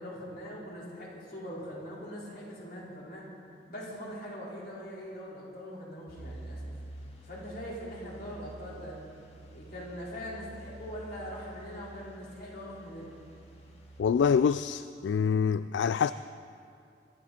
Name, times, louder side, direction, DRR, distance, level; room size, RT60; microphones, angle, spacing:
voice 1, 0.0-3.3 3.7-6.7 7.2-9.0 9.5-13.1, equal, 60° left, -5 dB, 4.7 m, -42 dB
sound 1, 6.1-14.0, right 1 dB, 40° left, 2.1 m, -48 dB
voice 2, 14.0-16.1, left 6 dB, 80° left, 13 dB, 0.3 m, -26 dB
22.5 x 13.5 x 4.4 m, 2.4 s
head